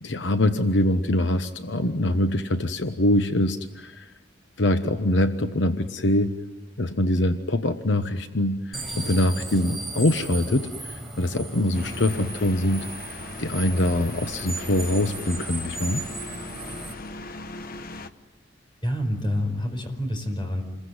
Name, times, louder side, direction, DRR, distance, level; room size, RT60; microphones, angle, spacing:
voice 1, 0.0-4.1 4.6-6.3 6.8-16.0, left 1 dB, 75° left, 8 dB, 1.1 m, -24 dB
sound 1, 8.7-16.9, right 2 dB, ahead, 5.2 m, -36 dB
sound 2, 11.7-18.1, left 2 dB, 55° left, 1.2 m, -39 dB
voice 2, 18.8-20.6, left 1 dB, 25° left, 5 dB, 4.8 m, -27 dB
28.0 x 22.0 x 9.6 m, 1.2 s
head